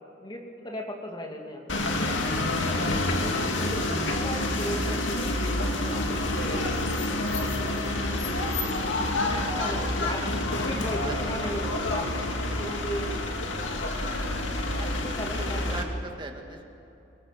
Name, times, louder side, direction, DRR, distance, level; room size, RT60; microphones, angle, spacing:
voice 1, 0.2-2.0 2.8-3.8 4.1-6.8 7.1-7.4 9.4-13.2 15.0-15.9, equal, 25° left, 1 dB, 2.6 m, -37 dB
sound 1, 1.7-15.8, left 2 dB, 75° left, 2.4 m, -28 dB
voice 2, 2.5-2.9 6.6-6.9 9.1-9.6 11.0-11.5 13.6-14.0 14.7-15.0 15.4-16.6, right 2 dB, 25° right, 3 dB, 1.9 m, -42 dB
sound 2, 8.4-15.2, equal, 70° right, 4.7 m, -46 dB
24.5 x 17.5 x 7.6 m, 2.9 s
head